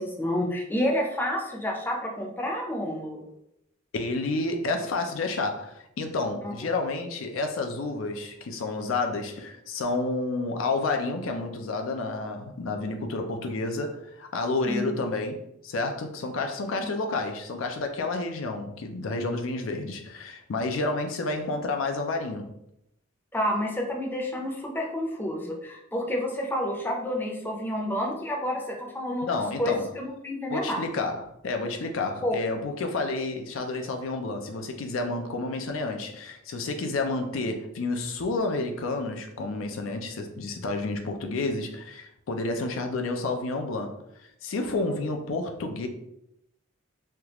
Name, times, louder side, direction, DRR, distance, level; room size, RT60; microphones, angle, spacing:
voice 1, 0.0-3.2 6.4-6.5 14.7-14.9 23.3-30.8 32.2-32.4 44.6-44.9, left 1 dB, 10° left, 0.5 m, -29 dB
voice 2, 3.9-22.5 29.2-29.9 30.5-44.0 44.4-45.9, left 3 dB, 85° left, 0.4 m, -30 dB
3.3 x 2.3 x 2.9 m
head